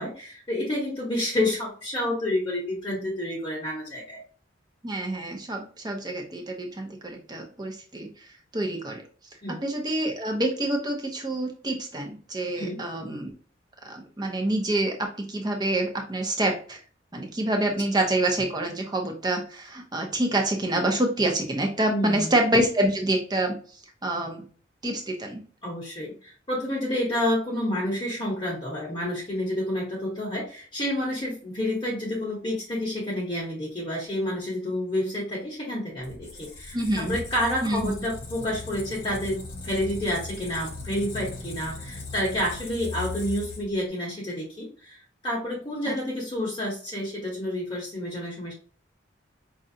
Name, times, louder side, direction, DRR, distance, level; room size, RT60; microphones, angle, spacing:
voice 1, 0.0-4.2 9.4-9.6 12.6-12.8 21.9-22.3 25.6-45.0 45.2-48.5, left 1 dB, 25° left, -4 dB, 1.0 m, -29 dB
voice 2, 4.8-8.1 8.5-9.0 9.6-13.3 13.8-16.8 17.1-23.6 24.0-24.4 24.8-25.4 36.7-37.2 37.6-37.9 45.9-46.0, right 1 dB, 20° right, 2 dB, 0.8 m, -27 dB
Squeak, 36.0-43.9, left 3 dB, 50° left, 1.1 m, -38 dB
5.3 x 2.5 x 2.7 m, 0.41 s
head